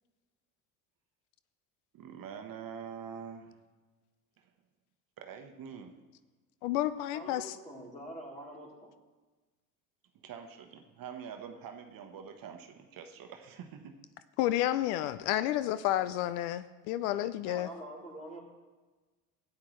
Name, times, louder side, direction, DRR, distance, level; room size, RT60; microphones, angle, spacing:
voice 1, 1.9-3.6 5.2-6.0 10.2-13.9, right 7 dB, 50° right, 5 dB, 1.1 m, -45 dB
voice 2, 6.6-7.6 14.4-17.7, left 13 dB, 80° left, 14 dB, 0.5 m, -30 dB
voice 3, 7.1-8.9 17.4-18.4, right 1 dB, 15° left, -3 dB, 3.3 m, -45 dB
12.5 x 9.5 x 3.2 m, 1.3 s
supercardioid pair, 80°, 43 cm